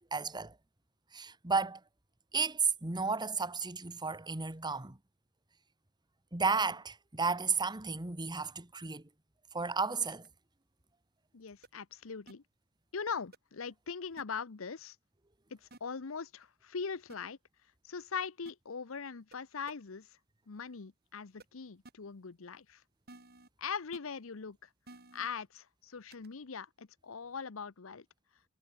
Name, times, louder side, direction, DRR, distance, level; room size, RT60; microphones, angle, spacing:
voice 1, 0.1-0.5 1.1-1.8 2.3-5.0 6.3-9.0 9.5-10.3, right 4 dB, 20° right, 1.5 m, -33 dB
sound 1, 10.1-10.3 11.6-11.7 12.3-12.4 13.3-13.4 14.2-14.3 15.7-15.8 17.1-17.2 18.5-18.6 19.3-19.4 19.7-19.8 21.4-21.5 21.8-21.9 23.1-23.5 23.9-24.0 24.9-25.3 26.1-26.3, right 2 dB, 50° right, 7.3 m, -53 dB
voice 2, 11.3-12.4 12.9-15.0 15.5-17.4 17.8-20.2 20.5-22.8 23.6-24.7 25.1-28.1, left 5 dB, 70° left, 0.8 m, -41 dB
head